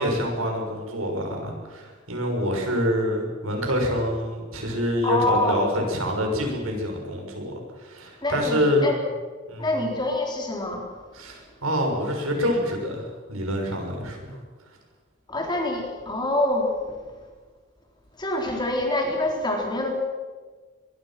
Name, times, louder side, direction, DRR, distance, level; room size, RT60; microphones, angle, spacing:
voice 1, 0.0-8.9 9.5-9.8 11.1-14.4, equal, 90° right, 2 dB, 6.7 m, -26 dB
voice 2, 5.0-5.6 8.2-9.0 9.6-10.9 15.3-16.7 18.2-19.9, left 1 dB, 20° left, 1 dB, 4.0 m, -25 dB
23.5 x 22.5 x 6.1 m, 1.4 s
head